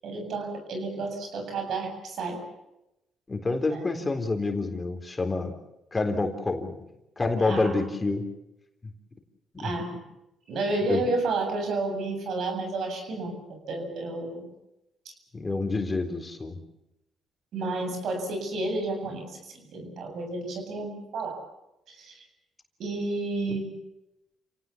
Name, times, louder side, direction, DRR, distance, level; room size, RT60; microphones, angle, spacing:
voice 1, 0.0-2.4 3.7-3.8 7.4-7.7 9.6-10.0 10.5-13.4 13.7-14.5 17.5-19.4 19.7-21.4 21.9-22.2 22.8-23.7, right 2 dB, 70° right, 4 dB, 7.8 m, -31 dB
voice 2, 3.3-5.5 5.9-6.8 7.2-8.3 9.5-9.7 10.9-11.0 15.3-16.6 23.5-23.6, left 3 dB, 25° left, 5 dB, 3.8 m, -27 dB
29.5 x 18.0 x 7.3 m, 0.88 s
cardioid pair, 90°, 0 cm